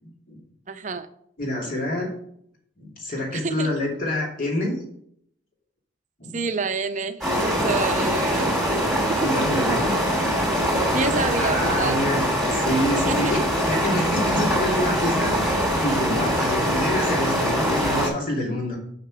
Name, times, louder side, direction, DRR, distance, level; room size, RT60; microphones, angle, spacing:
voice 1, 0.0-0.4 1.4-2.1 2.8-4.7 6.2-6.4 9.2-9.9 11.4-12.2 12.5-18.8, left 1 dB, 45° left, -2 dB, 2.7 m, -27 dB
voice 2, 0.7-1.1 3.3-3.7 6.3-9.3 10.8-12.0 13.0-13.3, right 4 dB, 40° right, 9 dB, 0.6 m, -28 dB
sound 1, 7.2-18.1, equal, ahead, 2.7 m, -23 dB
sound 2, 9.9-16.3, left 1 dB, 80° left, 3.8 m, -37 dB
6.4 x 5.9 x 6.0 m, 0.69 s
head